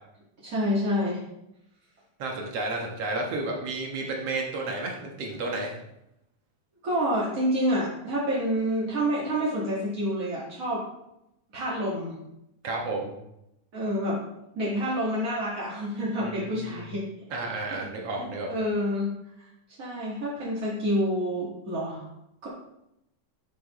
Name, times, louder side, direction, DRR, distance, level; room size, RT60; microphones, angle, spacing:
voice 1, 0.4-1.2 6.8-10.8 11.5-12.1 13.7-14.2 14.5-17.1 17.7-17.8 18.2-19.1 19.8-22.1 22.4-22.5, equal, 35° right, -7 dB, 1.3 m, -28 dB
voice 2, 2.2-5.8 12.6-13.1 16.2-16.9 17.3-18.5, right 2 dB, 55° right, -1 dB, 1.9 m, -32 dB
11.5 x 6.5 x 3.1 m, 0.82 s
omnidirectional pair, 4.1 m